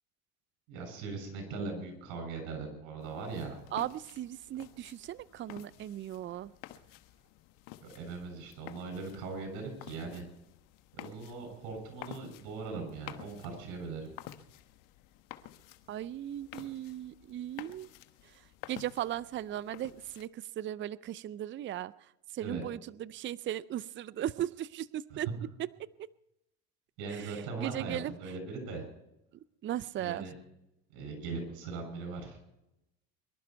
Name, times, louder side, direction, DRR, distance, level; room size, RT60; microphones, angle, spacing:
voice 1, 0.7-3.6 7.8-10.2 11.0-14.1 22.4-22.6 25.1-25.3 27.0-28.8 30.0-30.3 30.9-32.4, right 4 dB, 80° right, 4 dB, 7.1 m, -40 dB
sound 1, 3.0-20.3, left 14 dB, 75° left, 1.2 m, -52 dB
voice 2, 3.7-6.5 15.9-17.9 18.7-21.9 22.3-25.3 25.6-25.7 26.0-26.1 27.1-28.1 29.6-30.3, right 12 dB, 35° right, 18 dB, 0.5 m, -37 dB
24.0 x 12.0 x 4.6 m, 0.86 s
supercardioid pair, 100°, 32 cm